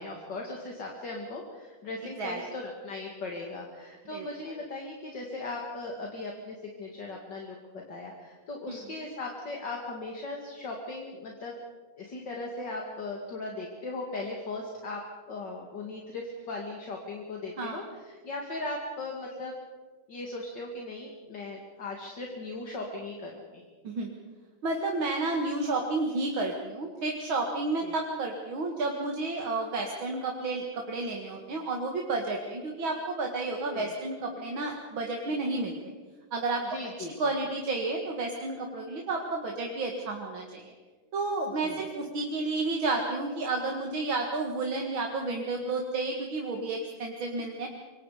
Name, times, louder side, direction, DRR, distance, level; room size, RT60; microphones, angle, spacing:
voice 1, 0.0-7.6 7.9-11.5 12.0-15.0 15.3-19.5 20.1-23.6 27.8-27.9 33.7-33.9 36.6-37.1 41.6-41.8, left 2 dB, 60° left, 0 dB, 2.9 m, -38 dB
voice 2, 24.6-35.9 36.3-36.6 37.2-40.7 41.1-47.7, right 3 dB, 75° right, 1 dB, 2.7 m, -31 dB
27.0 x 24.0 x 5.0 m, 1.4 s
omnidirectional pair, 2.2 m